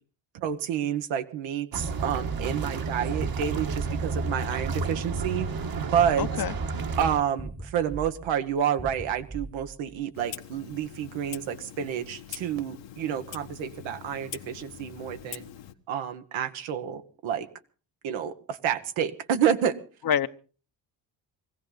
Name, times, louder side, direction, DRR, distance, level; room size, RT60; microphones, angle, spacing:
voice 1, 0.3-5.5 5.8-6.3 7.0-15.5 15.9-17.5 18.0-19.7, right 9 dB, 85° right, 1.4 m, -29 dB
sound 1, 1.7-7.2, right 4 dB, 50° right, 1.5 m, -31 dB
sound 2, 1.8-10.0, right 2 dB, 5° right, 1.1 m, -41 dB
voice 2, 6.2-6.5 20.0-20.3, left 8 dB, 50° left, 0.9 m, -26 dB
Clock, 10.1-15.7, left 11 dB, 70° left, 1.3 m, -43 dB
21.5 x 15.5 x 3.9 m
cardioid pair, 80°, 46 cm